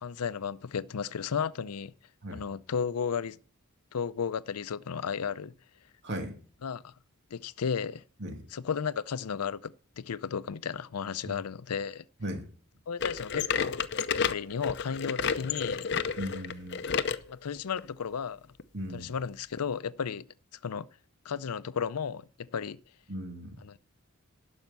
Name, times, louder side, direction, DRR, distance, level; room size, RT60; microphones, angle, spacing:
voice 1, 0.0-1.9 2.3-3.4 3.9-5.5 6.6-6.9 7.3-8.0 8.5-12.1 12.9-13.8 14.3-15.9 17.3-18.4 18.9-20.2 20.6-20.9 21.2-22.8 23.6-23.8, left 6 dB, 90° left, 0.5 m, -34 dB
voice 2, 6.0-6.3 8.2-8.3 11.2-11.3 12.2-12.5 16.2-16.8 18.7-19.1 23.1-23.5, equal, 50° right, 2.4 m, -37 dB
sound 1, 13.0-17.2 17.8-17.9 18.6-18.7 19.6-19.7, left 6 dB, 50° left, 0.6 m, -31 dB
11.5 x 6.4 x 8.1 m
head